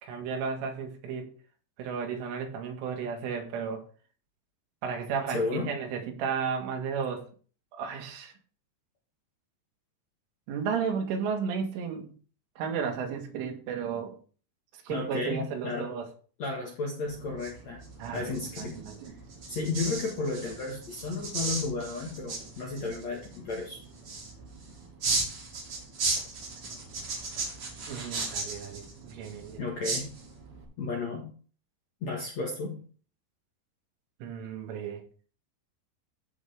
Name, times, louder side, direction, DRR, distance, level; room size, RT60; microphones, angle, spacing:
voice 1, 0.0-1.3 1.8-3.9 4.8-7.3 7.7-8.3 10.5-12.1 12.6-14.1 14.9-16.1 18.0-19.2 27.9-29.6 34.2-35.0, right 6 dB, 80° right, 3 dB, 4.2 m, -33 dB
voice 2, 5.3-5.7 14.9-16.0 16.4-17.8 18.1-18.8 19.5-23.8 29.6-30.1 30.8-31.3 32.0-32.8, left 3 dB, 55° left, -2 dB, 2.0 m, -33 dB
sound 1, 17.0-30.6, right 3 dB, 40° right, 3.4 m, -36 dB
14.5 x 5.7 x 3.5 m, 0.41 s
omnidirectional pair, 5.5 m